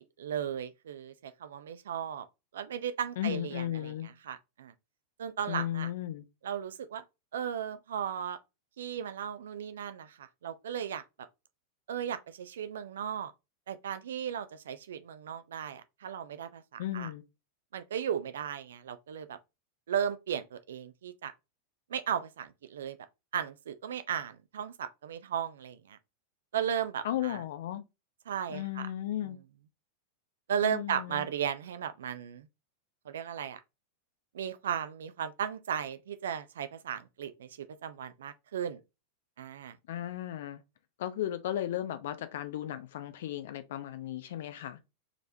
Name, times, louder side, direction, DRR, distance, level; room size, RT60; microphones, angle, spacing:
voice 1, 0.2-2.3 2.5-3.9 4.3-4.7 5.2-5.9 6.4-7.0 7.3-8.4 8.8-11.0 11.9-13.3 13.7-17.1 17.7-19.4 19.9-21.3 21.9-23.0 23.3-26.0 26.5-27.4 28.3-28.9 30.5-32.5 33.1-33.6 34.3-38.8 39.4-39.8, right 8 dB, 60° right, 0.5 m, -35 dB
voice 2, 3.2-4.1 5.5-6.3 16.8-17.2 27.0-27.9 28.5-29.4 30.6-31.3 39.9-40.6 41.0-44.8, left 12 dB, 55° left, 0.7 m, -35 dB
4.9 x 3.4 x 2.7 m
figure-of-eight pair, 90°, 0 cm